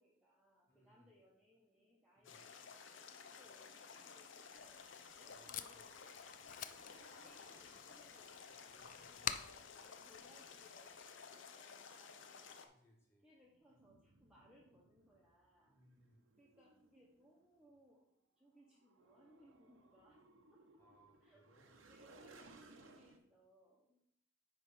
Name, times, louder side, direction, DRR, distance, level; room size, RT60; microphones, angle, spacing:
voice 1, 0.0-6.5 6.9-8.8 9.1-11.0 11.3-12.7 13.2-15.8 16.4-18.0 18.4-20.8 21.2-24.0, equal, 5° right, -5 dB, 0.9 m, -68 dB
voice 2, 0.7-1.2 2.1-2.5 5.3-5.7 8.7-9.3 12.7-13.3 15.6-16.3 20.8-21.8, equal, 15° left, -1 dB, 1.7 m, -70 dB
sound 1, 2.2-12.7, left 6 dB, 70° left, 0.7 m, -55 dB
sound 2, 3.6-9.7 13.4-17.8 18.5-23.2, right 2 dB, 85° right, 0.9 m, -66 dB
Packing tape duct tape, 4.5-11.0, left 9 dB, 40° left, 0.4 m, -49 dB
9.4 x 3.2 x 5.7 m, 0.73 s
head